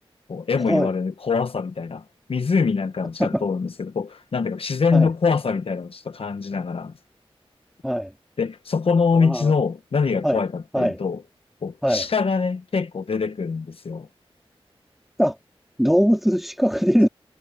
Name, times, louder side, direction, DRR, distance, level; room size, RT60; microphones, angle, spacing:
voice 1, 0.3-2.0 2.3-6.9 8.4-11.2 11.6-14.1, left 5 dB, 70° left, 1.1 m, -24 dB
voice 2, 9.1-9.5 10.2-10.4 10.7-11.0 11.8-12.1 15.2-15.4 15.8-17.1, equal, ahead, 2.3 m, -21 dB
wide cardioid pair, 110°, 10 cm